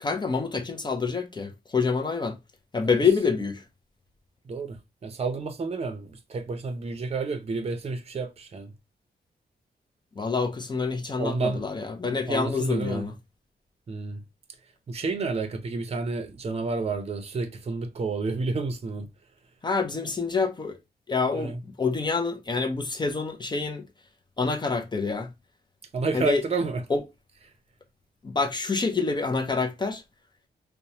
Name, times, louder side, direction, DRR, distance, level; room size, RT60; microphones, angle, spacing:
voice 1, 0.0-2.4 2.7-3.6 10.2-13.1 19.6-20.8 21.1-23.8 24.4-25.3 26.1-26.4 26.9-27.0 28.3-30.0, left 4 dB, 25° left, 0.5 m, -27 dB
voice 2, 4.5-8.7 11.2-11.6 12.0-13.1 13.9-14.2 14.9-19.1 21.3-21.6 25.9-26.8, right 3 dB, 40° right, 0.6 m, -30 dB
2.9 x 2.1 x 2.7 m
wide cardioid pair, 110°, 17 cm